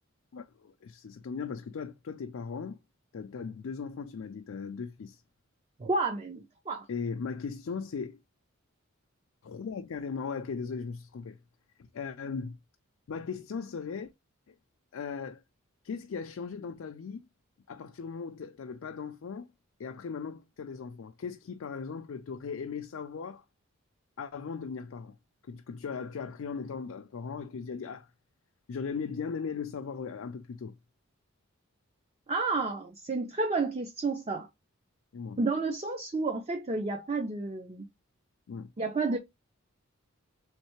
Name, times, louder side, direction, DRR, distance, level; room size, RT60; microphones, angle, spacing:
voice 1, 0.3-2.8 3.1-5.2 6.9-8.2 9.4-11.4 11.8-12.6 13.1-14.1 14.5-14.6 14.9-15.4 15.8-17.2 17.7-19.5 19.8-23.4 24.2-25.2 25.5-28.1 28.7-30.8 35.1-35.4 38.5-38.7, left 5 dB, 70° left, 0.4 m, -38 dB
voice 2, 5.8-6.9 32.3-34.5 35.4-37.8 38.8-39.2, right 3 dB, 30° right, 0.5 m, -31 dB
3.6 x 3.2 x 3.0 m
head